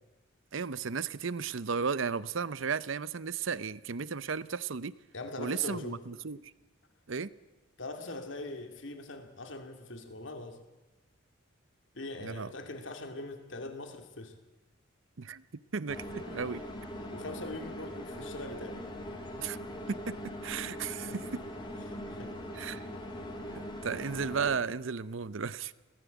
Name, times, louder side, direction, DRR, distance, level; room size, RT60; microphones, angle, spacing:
voice 1, 0.5-4.9 5.4-6.4 7.1-7.3 12.2-12.5 15.2-15.4 15.7-16.6 19.4-19.6 19.9-21.4 22.6-22.8 23.8-25.7, right 5 dB, 75° right, 17 dB, 0.7 m, -34 dB
voice 2, 5.1-6.0 7.8-10.6 11.9-14.3 17.1-19.0 21.1-21.2 21.8-22.4 22.7-22.9, left 2 dB, 70° left, 6 dB, 2.5 m, -42 dB
sound 1, 15.9-24.6, equal, 20° left, 2.7 m, -41 dB
23.0 x 18.0 x 8.3 m, 1.1 s
head